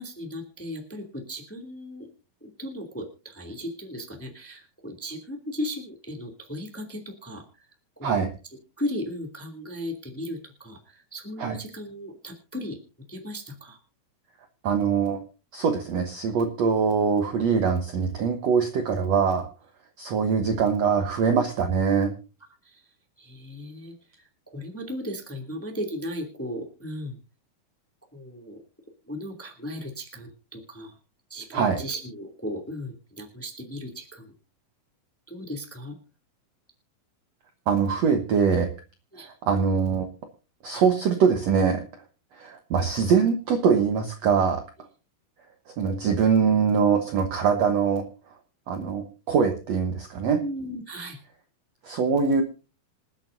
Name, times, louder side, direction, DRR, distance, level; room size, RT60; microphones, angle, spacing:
voice 1, 0.0-2.1 2.4-7.4 7.9-8.3 8.8-12.8 13.1-13.8 22.6-22.8 23.2-23.9 24.5-27.2 28.1-28.6 29.1-30.9 31.3-34.3 35.3-35.9 39.1-39.3 50.4-51.2, equal, 5° left, 3 dB, 1.7 m, -36 dB
voice 2, 14.6-15.2 15.5-19.5 20.0-22.1 31.5-31.8 37.7-38.7 39.2-40.1 40.6-41.8 42.4-44.6 45.8-48.0 48.7-50.4 51.8-52.4, right 6 dB, 65° right, 6 dB, 1.7 m, -23 dB
27.0 x 9.0 x 2.6 m, 0.32 s
omnidirectional pair, 4.5 m